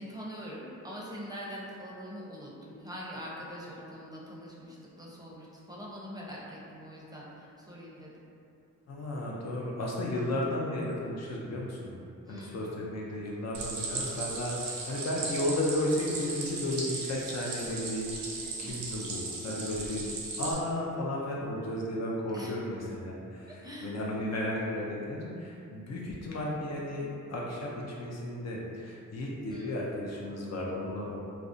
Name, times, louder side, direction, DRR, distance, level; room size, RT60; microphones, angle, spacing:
voice 1, 0.0-8.1 12.2-12.9 18.6-18.7 22.3-22.6 23.5-24.0 29.5-29.8, equal, 10° right, -6 dB, 0.6 m, -43 dB
voice 2, 8.9-12.0 12.3-18.1 18.6-20.1 20.4-31.2, left 1 dB, 50° left, -3 dB, 0.5 m, -34 dB
Stream, 13.5-20.5, right 3 dB, 75° right, 0.6 m, -37 dB
2.4 x 2.0 x 2.5 m, 2.6 s
cardioid pair, 55°, 33 cm